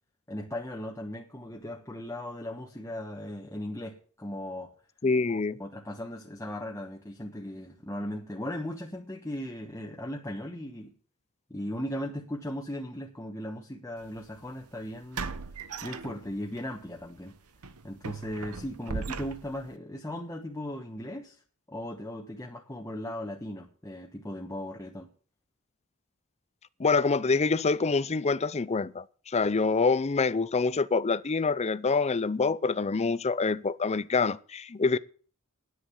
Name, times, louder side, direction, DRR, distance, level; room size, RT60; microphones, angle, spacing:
voice 1, 0.3-4.7 5.6-10.9 11.5-15.3 15.8-17.3 17.8-21.4 21.7-25.1, left 1 dB, 15° left, 1.3 m, -37 dB
voice 2, 5.0-5.6 26.8-35.0, left 4 dB, 30° left, 0.5 m, -26 dB
sound 1, 14.0-14.2 15.1-16.6 17.0-17.2 17.6-19.7, right 4 dB, 80° right, 1.0 m, -38 dB
10.0 x 7.7 x 9.2 m
head